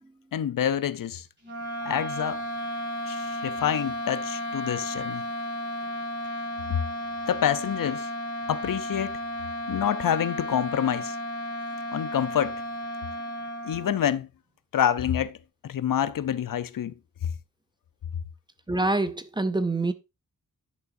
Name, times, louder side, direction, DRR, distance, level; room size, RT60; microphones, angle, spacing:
voice 1, 0.3-1.3 1.9-2.4 3.1-5.2 6.7-6.8 7.3-8.1 8.5-9.2 9.7-11.2 11.9-12.6 13.6-14.3 14.7-15.4 15.6-16.9, left 9 dB, 80° left, 0.6 m, -27 dB
sound 1, 1.4-14.1, equal, 35° right, 5.1 m, -33 dB
voice 2, 18.7-19.9, right 2 dB, 15° right, 0.5 m, -25 dB
10.5 x 6.9 x 2.6 m
wide cardioid pair, 170°, 33 cm